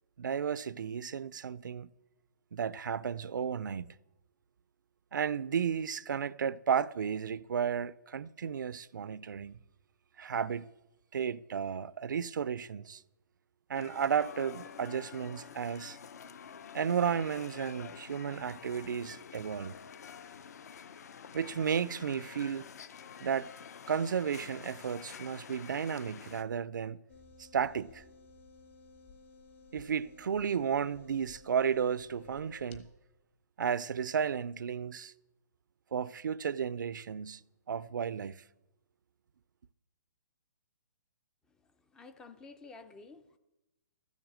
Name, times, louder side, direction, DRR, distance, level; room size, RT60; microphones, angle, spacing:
voice 1, 0.2-1.9 2.5-3.9 5.1-9.6 10.2-10.7 11.1-13.0 13.7-16.0 16.7-19.8 21.3-22.7 23.2-23.5 23.9-27.0 27.4-28.0 29.7-32.9 33.6-35.1 35.9-37.4 37.7-38.4, right 7 dB, 85° right, 0.5 m, -33 dB
sound 1, 13.7-26.4, left 7 dB, 60° left, 0.7 m, -48 dB
sound 2, 27.1-32.8, left 4 dB, 40° left, 1.3 m, -56 dB
voice 2, 41.9-43.4, left 3 dB, 5° left, 0.4 m, -51 dB
13.5 x 7.3 x 7.6 m
hypercardioid pair, 165°, 10 cm